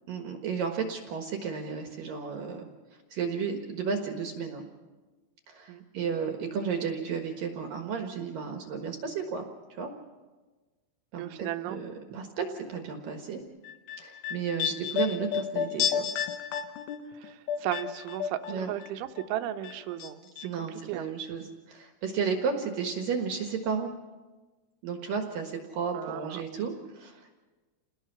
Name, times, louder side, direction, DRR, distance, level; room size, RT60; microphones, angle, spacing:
voice 1, 0.1-2.7 3.1-4.7 5.5-9.9 11.1-13.4 14.0-16.1 18.5-18.7 20.4-23.9 24.8-27.3, right 6 dB, 65° right, 3 dB, 2.4 m, -33 dB
voice 2, 11.2-11.8 12.1-12.2 17.1-21.1 25.9-26.4, right 12 dB, 80° right, 9 dB, 3.2 m, -36 dB
sound 1, 13.6-18.9 19.2-20.1 20.4-20.5, left 8 dB, 80° left, 3.6 m, -32 dB
29.0 x 19.5 x 5.8 m, 1.3 s
omnidirectional pair, 5.6 m